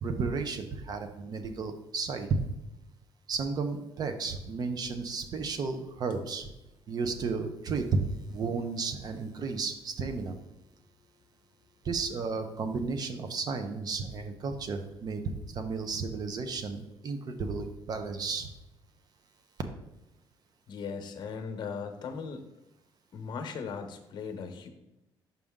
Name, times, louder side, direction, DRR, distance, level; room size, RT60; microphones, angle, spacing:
voice 1, 0.0-2.4 3.3-6.5 6.9-8.0 8.3-10.3 11.8-15.2 15.5-18.5, right 4 dB, 50° right, 7 dB, 0.7 m, -33 dB
voice 2, 20.7-22.4 23.1-24.7, left 5 dB, 55° left, 6 dB, 0.9 m, -38 dB
5.7 x 5.3 x 3.6 m, 0.92 s
cardioid pair, 125°, 9 cm